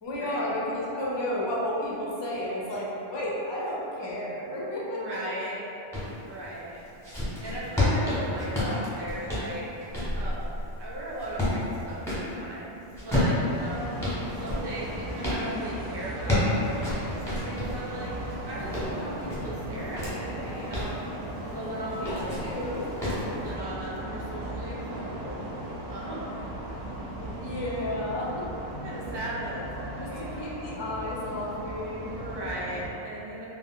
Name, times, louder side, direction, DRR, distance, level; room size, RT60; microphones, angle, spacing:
voice 1, 0.0-5.0 8.5-8.8 22.0-22.1 22.4-22.8 27.4-28.4 30.0-32.1, left 1 dB, 40° left, -5 dB, 0.4 m, -32 dB
voice 2, 4.8-5.6 6.3-6.8 7.4-9.7 10.1-13.9 14.4-18.1 18.5-20.9 21.5-22.7 23.0-25.5 25.9-26.2 27.2-27.3 28.8-30.5 32.1-33.5, right 1 dB, 40° right, -6 dB, 0.4 m, -37 dB
sound 1, 5.9-6.1 6.7-12.3 12.9-15.4 16.0-17.8 18.3-20.1 20.5-21.0 21.9-22.5 23.0-23.3, left 1 dB, 5° left, 0.7 m, -29 dB
sound 2, 13.5-32.9, right 1 dB, 85° right, 0.8 m, -37 dB
2.3 x 2.0 x 3.6 m, 3.0 s
omnidirectional pair, 1.0 m